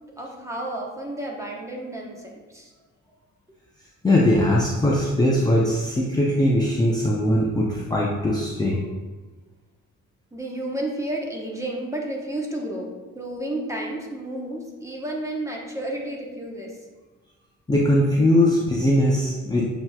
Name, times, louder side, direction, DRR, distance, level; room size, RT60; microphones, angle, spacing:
voice 1, 0.2-2.7 10.3-12.9 13.1-16.8, right 1 dB, 10° right, -1 dB, 0.9 m, -31 dB
voice 2, 4.0-8.8 17.7-19.6, left 1 dB, 15° left, -4 dB, 0.5 m, -20 dB
7.5 x 2.9 x 2.2 m, 1.2 s
cardioid pair, 90°, 30 cm